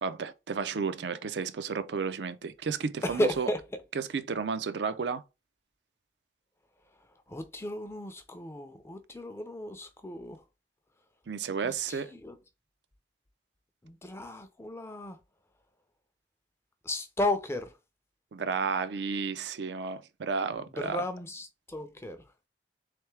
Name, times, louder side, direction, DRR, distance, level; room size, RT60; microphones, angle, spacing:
voice 1, 0.0-3.5 4.0-5.2 11.3-12.1 18.3-21.0, right 5 dB, 75° right, 0.5 m, -32 dB
voice 2, 3.0-3.8 6.9-10.4 11.6-12.4 13.8-15.2 16.8-17.8 20.5-22.3, left 1 dB, 15° left, 0.5 m, -34 dB
3.5 x 3.3 x 3.2 m
head